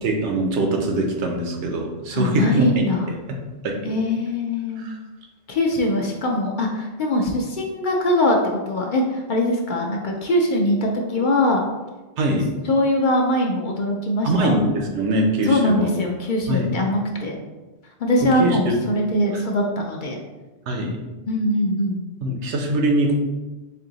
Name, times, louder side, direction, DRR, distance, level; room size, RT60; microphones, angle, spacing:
voice 1, 0.0-2.7 3.1-3.2 3.6-3.7 4.8-5.0 12.2-12.5 14.2-15.9 16.5-16.7 18.4-18.8 20.7-21.0 22.2-23.1, right 1 dB, 85° right, 2 dB, 1.0 m, -22 dB
voice 2, 2.1-3.1 3.8-4.9 5.5-11.6 12.6-14.6 15.5-17.4 18.0-20.2 21.3-22.0, left 1 dB, 55° left, 0 dB, 0.6 m, -22 dB
3.4 x 2.8 x 3.8 m, 1.2 s
omnidirectional pair, 1.1 m